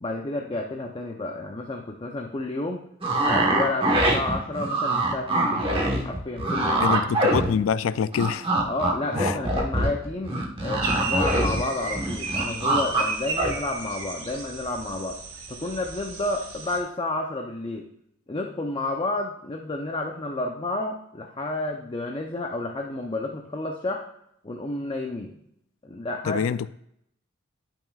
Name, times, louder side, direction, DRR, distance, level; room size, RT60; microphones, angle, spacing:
voice 1, 0.0-2.8 3.2-7.2 8.7-15.2 15.5-17.9 18.3-24.0 24.4-25.4 25.8-26.6, left 2 dB, 25° left, 0.6 m, -31 dB
sound 1, 3.0-7.9 8.1-11.6 11.9-13.0 13.4-13.5, right 1 dB, 25° right, 1.2 m, -23 dB
voice 2, 6.8-8.5 9.2-9.4 26.2-26.7, left 7 dB, 70° left, 0.3 m, -25 dB
sound 2, 10.8-16.8, right 3 dB, 85° right, 1.6 m, -34 dB
10.5 x 6.0 x 2.4 m
head